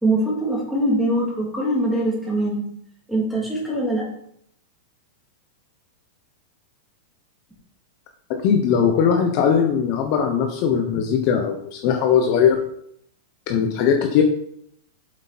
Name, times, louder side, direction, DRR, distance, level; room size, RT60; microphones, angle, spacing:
voice 1, 0.0-2.6 3.1-4.1, right 1 dB, ahead, -4 dB, 3.1 m, -22 dB
voice 2, 8.4-12.6 13.5-14.2, left 7 dB, 40° left, 3 dB, 1.1 m, -19 dB
7.9 x 7.8 x 4.3 m, 0.70 s
supercardioid pair, 160°, 0 cm